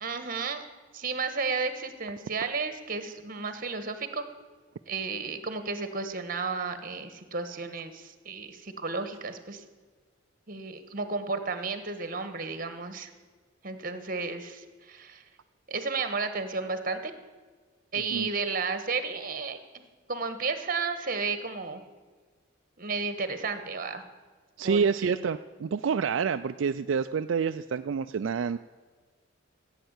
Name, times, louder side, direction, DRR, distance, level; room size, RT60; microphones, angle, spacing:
voice 1, 0.0-0.6 0.9-4.2 4.9-9.6 10.5-13.1 13.6-15.2 15.7-17.1 17.9-19.8 20.1-21.8 22.8-24.0 24.6-25.3, right 4 dB, 45° right, 10 dB, 1.3 m, -33 dB
voice 2, 24.6-28.6, right 6 dB, 75° right, 9 dB, 0.4 m, -28 dB
15.0 x 8.9 x 8.1 m, 1.4 s
head